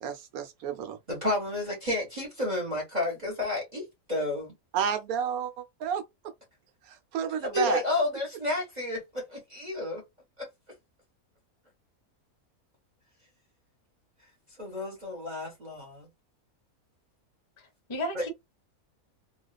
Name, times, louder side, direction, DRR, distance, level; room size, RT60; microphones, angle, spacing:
voice 1, 0.0-1.0 4.7-6.0 6.8-7.8, right 8 dB, 80° right, 1.1 m, -31 dB
voice 2, 1.1-4.5 7.4-10.0 10.4-10.5 14.6-16.1 18.1-18.2, left 2 dB, 35° right, 0.9 m, -31 dB
voice 3, 17.6-18.3, equal, 30° left, 0.5 m, -35 dB
2.4 x 2.3 x 2.2 m
omnidirectional pair, 1.5 m